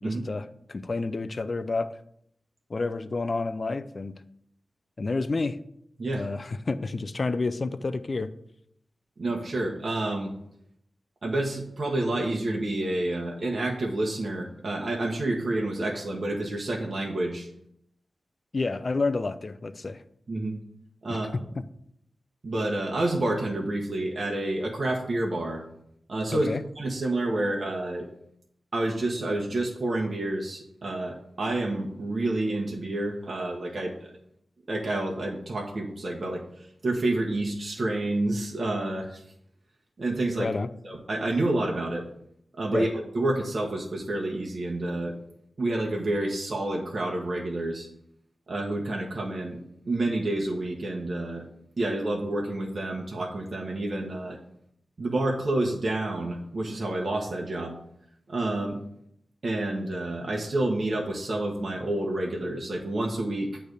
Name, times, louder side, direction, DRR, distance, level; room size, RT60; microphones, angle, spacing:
voice 1, 0.0-1.9 2.7-4.2 5.0-5.6 6.1-8.3 18.5-20.0 21.1-21.2 26.3-26.6 40.4-40.7 42.7-42.9, left 3 dB, 45° left, 12 dB, 0.5 m, -29 dB
voice 2, 9.2-10.3 11.2-17.5 20.3-20.6 21.0-21.4 22.4-25.6 26.1-26.5 26.8-28.1 28.7-34.1 34.7-39.2 40.0-40.5 40.8-42.0 42.5-45.1 45.6-47.9 48.5-51.5 51.8-54.4 55.0-57.8 58.3-58.8 59.4-63.6, right 2 dB, 55° right, -1 dB, 1.1 m, -29 dB
8.8 x 3.4 x 6.5 m, 0.73 s
wide cardioid pair, 85°, 0 cm